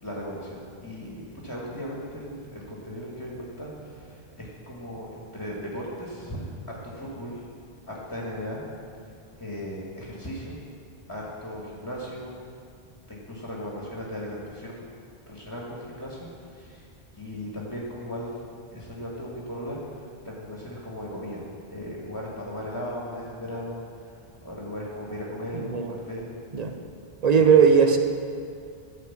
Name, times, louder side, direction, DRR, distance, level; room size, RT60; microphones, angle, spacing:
voice 1, 0.0-7.4 7.9-8.6 9.4-10.6 11.1-12.3 13.1-14.8 15.3-16.8 17.1-18.4 18.7-21.4 21.7-24.1 24.4-26.3 27.3-27.5, equal, 20° left, -4 dB, 1.5 m, -37 dB
voice 2, 25.5-25.9 26.5-26.7 27.2-28.0, right 6 dB, 45° right, 5 dB, 0.8 m, -18 dB
12.5 x 4.8 x 7.2 m, 2.3 s
omnidirectional pair, 1.1 m